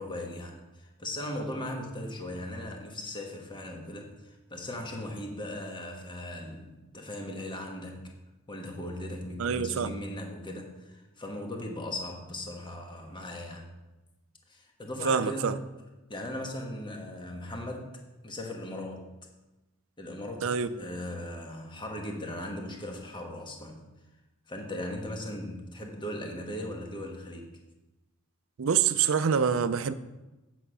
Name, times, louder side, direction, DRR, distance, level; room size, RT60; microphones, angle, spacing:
voice 1, 0.0-8.1 8.5-13.6 14.5-15.5 16.1-17.9 18.2-19.1 20.0-23.8 24.5-27.5, left 1 dB, 20° left, 2 dB, 1.3 m, -38 dB
voice 2, 9.4-10.0 15.0-15.6 20.4-20.7 28.6-29.9, right 7 dB, 65° right, 14 dB, 0.5 m, -26 dB
8.3 x 6.4 x 5.5 m, 1.1 s
head